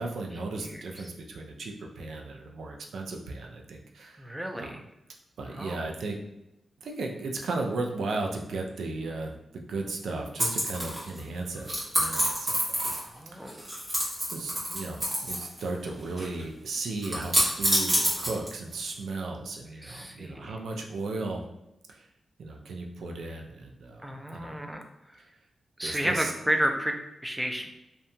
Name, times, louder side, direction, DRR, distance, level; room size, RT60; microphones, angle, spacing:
voice 1, 0.0-4.3 4.6-4.8 5.4-6.2 6.8-12.9 13.3-13.5 14.3-21.4 21.9-22.1 22.4-24.6 25.2-25.3 25.8-26.3, right 3 dB, 85° right, 2 dB, 0.4 m, -35 dB
voice 2, 4.2-4.8 5.6-5.8 13.0-13.7 19.8-20.5 24.0-24.9 25.8-27.7, equal, 5° right, 3 dB, 0.4 m, -31 dB
sound 1, 10.4-11.2 11.6-13.2 13.4-15.6 15.9-16.4 17.0-18.7, equal, 35° right, 1.2 m, -27 dB
2.7 x 2.2 x 2.6 m, 0.89 s
cardioid pair, 90°, 0 cm